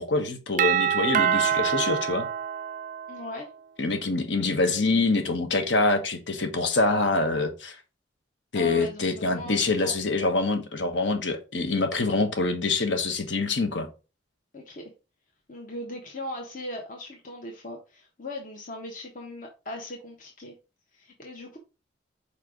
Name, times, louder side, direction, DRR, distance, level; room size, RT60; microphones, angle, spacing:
voice 1, 0.0-2.3 3.8-7.8 8.5-13.9, left 3 dB, 70° left, 1.3 m, -25 dB
Doorbell, 0.6-3.4, right 8 dB, 45° right, 0.3 m, -25 dB
voice 2, 3.1-3.5 8.5-10.0 14.5-14.8 15.5-20.5 20.9-21.6, left 1 dB, 45° left, 1.2 m, -39 dB
5.0 x 4.4 x 5.0 m
head